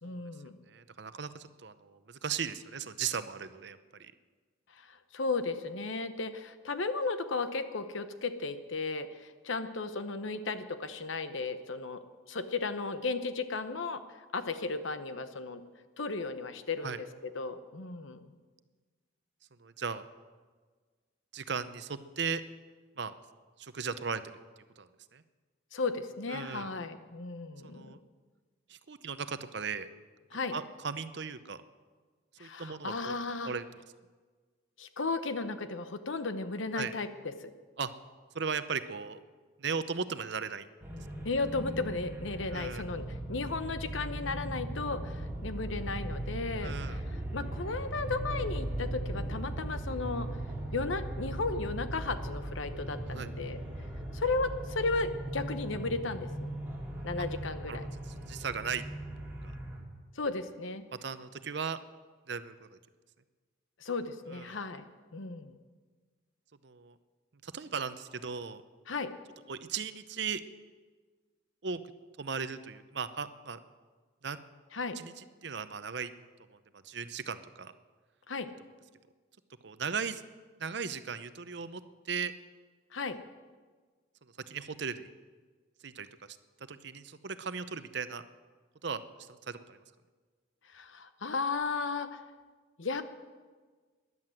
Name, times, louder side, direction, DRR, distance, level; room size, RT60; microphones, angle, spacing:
voice 1, 0.0-0.6 4.8-12.0 12.3-14.0 14.3-15.6 16.0-18.3 25.7-28.0 30.3-30.6 32.4-33.5 34.8-37.5 41.2-50.3 50.7-53.6 54.1-56.5 57.0-57.8 60.2-60.8 63.8-64.8 65.1-65.6 68.9-69.1 74.7-75.0 78.3-78.5 82.9-83.2 90.7-92.2 92.8-93.0, left 3 dB, 75° left, 10 dB, 1.0 m, -35 dB
voice 2, 0.7-4.1 16.8-17.0 19.6-20.1 21.3-22.4 23.0-23.1 23.6-24.4 24.8-25.2 26.3-26.7 27.6-28.0 28.7-29.9 30.5-31.6 32.4-33.2 33.4-33.6 36.7-36.9 37.8-37.9 38.3-39.2 39.6-40.7 42.5-42.9 46.6-47.0 53.1-53.3 57.7-57.9 58.3-58.8 61.0-61.8 62.3-62.8 64.3-64.6 66.6-66.9 67.4-68.6 69.5-70.4 71.6-71.8 72.2-73.6 74.2-74.4 75.0-76.1 76.5-76.6 76.8-77.7 79.6-80.2 80.6-82.3 84.5-85.1 85.8-86.1 86.7-88.2 88.8-89.8, right 6 dB, 60° right, 12 dB, 0.7 m, -37 dB
sound 1, 40.8-59.8, right 1 dB, 10° right, 2.6 m, -38 dB
13.5 x 11.0 x 7.8 m, 1.4 s
head